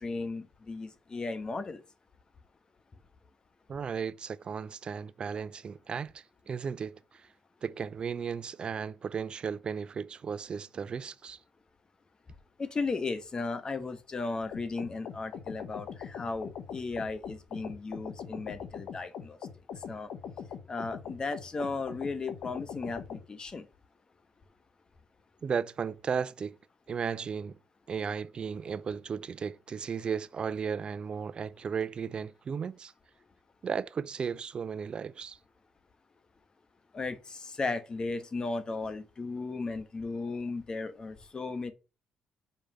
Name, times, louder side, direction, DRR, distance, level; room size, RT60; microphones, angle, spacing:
voice 1, 0.0-1.8 12.6-19.4 19.9-20.1 20.7-23.7 36.9-41.7, left 3 dB, 35° left, 1.2 m, -35 dB
voice 2, 3.7-7.3 7.6-11.4 25.4-26.6 26.9-27.6 27.9-32.9 33.6-35.4, right 6 dB, 45° right, 0.4 m, -35 dB
sound 1, 14.5-23.2, left 7 dB, 65° left, 1.0 m, -42 dB
5.4 x 4.7 x 5.5 m
hypercardioid pair, 55°, 2 cm